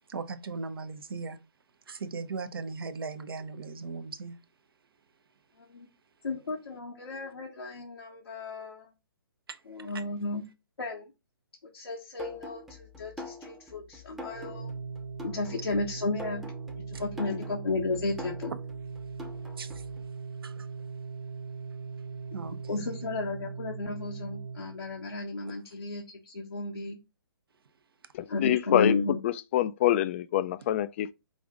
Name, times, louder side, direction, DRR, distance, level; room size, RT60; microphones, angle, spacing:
voice 1, 0.1-1.4 1.9-4.4 9.5-9.6 9.9-10.0 16.9-17.0 19.6-19.8 20.4-20.7 22.3-23.0, right 4 dB, 70° right, 0.8 m, -38 dB
voice 2, 6.2-8.8 9.7-10.4 10.8-11.0 11.7-14.7 15.2-16.4 17.0-18.5 22.7-27.0 28.3-29.2, left 3 dB, 85° left, 1.2 m, -33 dB
sound 1, 12.2-20.0, left 2 dB, 5° right, 0.7 m, -44 dB
Organ, 14.3-25.2, right 5 dB, 35° right, 0.9 m, -40 dB
voice 3, 28.1-31.1, left 12 dB, 35° left, 0.3 m, -26 dB
5.1 x 2.5 x 3.6 m
hypercardioid pair, 140°, 12 cm